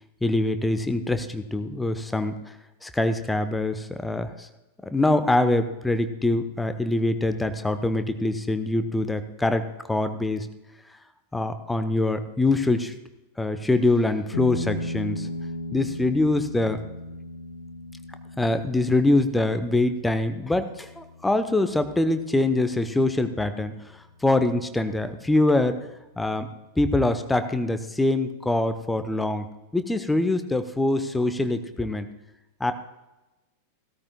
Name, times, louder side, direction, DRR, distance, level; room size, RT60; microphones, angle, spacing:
voice 1, 0.2-2.6 2.8-4.5 4.8-10.5 11.3-12.9 13.4-15.3 15.7-16.8 18.4-25.8 26.2-26.5 26.8-29.5 29.7-32.1 32.6-32.7, left 2 dB, 5° left, 10 dB, 0.7 m, -24 dB
sound 1, 14.3-23.3, left 1 dB, 75° left, 0.8 m, -37 dB
17.0 x 13.0 x 2.2 m, 1.0 s
figure-of-eight pair, 90°, 0 cm